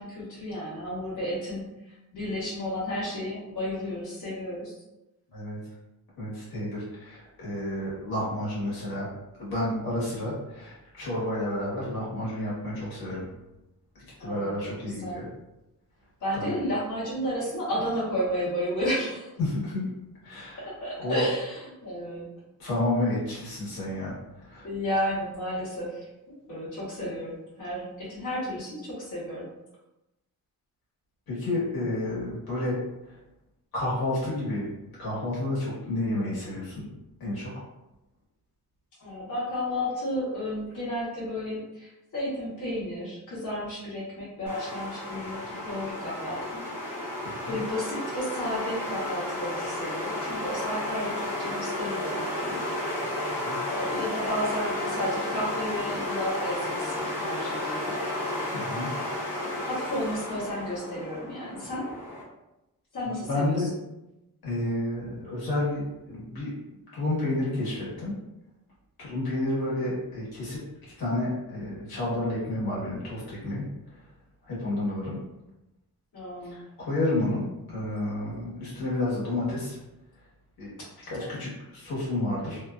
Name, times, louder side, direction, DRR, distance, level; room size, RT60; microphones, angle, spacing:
voice 1, 0.0-4.8 14.2-14.5 14.8-15.2 16.2-19.3 20.7-22.3 24.6-29.5 39.0-46.6 47.4-52.6 53.7-58.0 59.4-61.9 62.9-63.7 76.1-76.6 81.2-81.3, equal, 55° left, -10 dB, 1.1 m, -32 dB
voice 2, 6.2-9.1 9.4-13.3 14.2-15.2 16.3-16.6 19.4-19.9 20.2-20.6 21.0-21.2 22.6-24.7 31.3-32.8 33.1-33.2 33.7-34.7 35.0-36.9 37.2-37.5 47.4-47.5 53.4-53.6 58.5-58.9 63.0-63.7 64.4-66.5 66.9-68.1 69.0-70.6 71.0-73.7 74.4-75.2 76.4-76.5 76.8-77.4 77.7-79.8 80.6-80.7 81.1-82.6, left 1 dB, 75° left, -8 dB, 1.3 m, -30 dB
sound 1, 44.5-62.2, left 1 dB, 5° left, 0.8 m, -32 dB
2.7 x 2.2 x 2.3 m, 0.94 s
wide cardioid pair, 170°, 37 cm